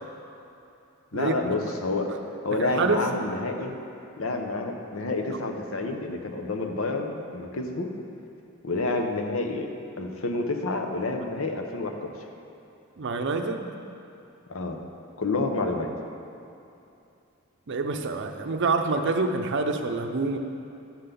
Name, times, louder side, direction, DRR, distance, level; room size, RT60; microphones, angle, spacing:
voice 1, 1.1-2.1 2.4-3.8 4.2-7.9 8.6-9.7 10.0-12.1 14.5-14.8 15.2-15.9, left 2 dB, 70° left, 4 dB, 0.8 m, -29 dB
voice 2, 2.6-3.0 13.0-13.7 17.7-20.4, right 3 dB, 60° right, 6 dB, 0.6 m, -26 dB
10.0 x 3.9 x 6.7 m, 2.8 s
head